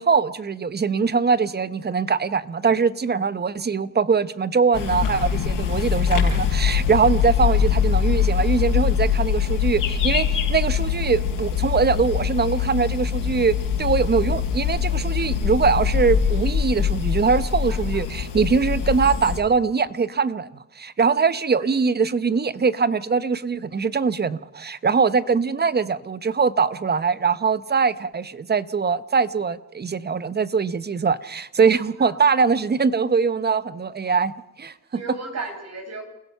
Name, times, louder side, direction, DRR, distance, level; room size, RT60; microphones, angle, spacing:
voice 1, 0.0-20.5 20.7-34.7, right 5 dB, 30° right, 0.9 m, -22 dB
sound 1, 4.7-19.4, left 8 dB, 75° left, 5.6 m, -23 dB
voice 2, 17.7-18.0 31.7-32.1 34.9-36.0, right 3 dB, 50° right, 5.6 m, -35 dB
28.5 x 16.5 x 5.8 m
cardioid pair, 80°, 33 cm